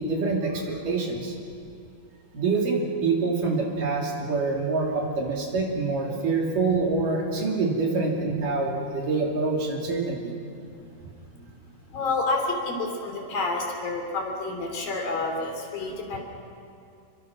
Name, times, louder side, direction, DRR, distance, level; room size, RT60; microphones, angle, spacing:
voice 1, 0.0-1.3 2.3-10.3, right 3 dB, 55° right, -1 dB, 4.3 m, -26 dB
voice 2, 11.9-16.2, left 3 dB, 60° left, 2 dB, 5.0 m, -29 dB
29.5 x 23.0 x 6.1 m, 2.6 s
omnidirectional pair, 4.6 m